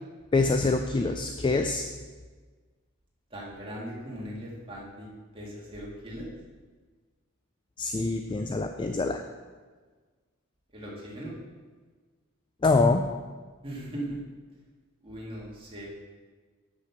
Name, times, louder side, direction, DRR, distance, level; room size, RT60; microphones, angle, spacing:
voice 1, 0.3-1.8 7.8-9.2 12.6-13.0, left 3 dB, 20° left, 6 dB, 0.3 m, -25 dB
voice 2, 3.3-5.1 5.3-6.3 10.7-11.4 13.6-14.2 15.0-15.9, right 1 dB, 25° right, -5 dB, 2.1 m, -39 dB
7.6 x 5.9 x 5.8 m, 1.4 s
head